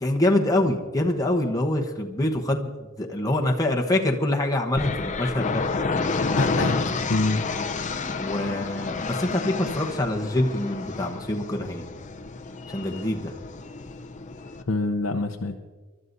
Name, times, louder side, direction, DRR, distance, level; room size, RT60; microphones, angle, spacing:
voice 1, 0.0-5.6 8.2-11.8 12.7-13.3, left 1 dB, 15° left, 1 dB, 1.1 m, -25 dB
sound 1, 4.8-14.6, left 3 dB, 35° left, 0.7 m, -30 dB
voice 2, 6.4-6.8 7.1-7.5 14.7-15.6, left 2 dB, 75° left, 2 dB, 0.8 m, -25 dB
28.5 x 12.5 x 2.7 m, 1.4 s
head